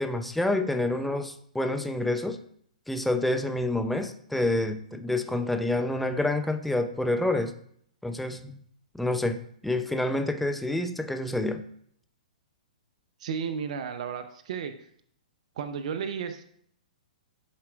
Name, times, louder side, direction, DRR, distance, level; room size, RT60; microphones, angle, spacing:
voice 1, 0.0-2.4 2.9-7.5 8.0-8.6 8.9-11.6, left 2 dB, ahead, 6 dB, 0.5 m, -28 dB
voice 2, 13.2-14.7 15.6-16.4, right 7 dB, 60° right, 9 dB, 0.6 m, -33 dB
11.5 x 4.3 x 2.4 m, 0.64 s
hypercardioid pair, 130°, 4 cm